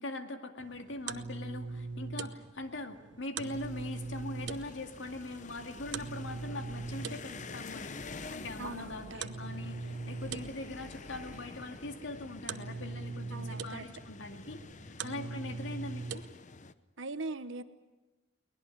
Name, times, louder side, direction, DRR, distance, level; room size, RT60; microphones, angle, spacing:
voice 1, 0.0-16.3, left 2 dB, 70° left, 7 dB, 2.2 m, -42 dB
sound 1, 0.6-16.2, right 4 dB, 65° right, 1.0 m, -42 dB
sound 2, 3.4-16.7, left 3 dB, 40° left, 0.8 m, -48 dB
sound 3, 4.0-12.4, right 1 dB, 35° right, 1.4 m, -56 dB
voice 2, 8.6-9.2 13.3-13.8 15.1-15.4 17.0-17.6, right 3 dB, 80° right, 12 dB, 1.3 m, -41 dB
23.0 x 19.5 x 9.9 m, 1.1 s
head